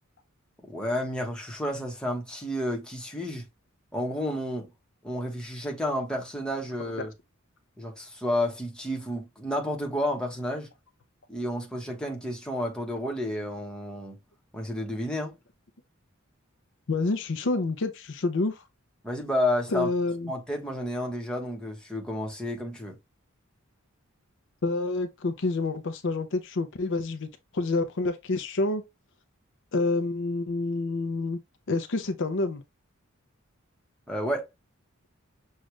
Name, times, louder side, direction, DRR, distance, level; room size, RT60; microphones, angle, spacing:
voice 1, 0.6-3.5 3.9-4.7 5.0-7.1 7.8-10.7 11.3-14.2 14.5-15.3 19.0-19.9 20.3-23.0 34.1-34.5, left 1 dB, 5° left, 1.1 m, -31 dB
voice 2, 16.9-18.6 19.7-20.3 24.6-27.3 27.5-28.8 29.7-31.4 31.7-32.6, left 3 dB, 60° left, 0.6 m, -28 dB
6.4 x 2.4 x 3.1 m
head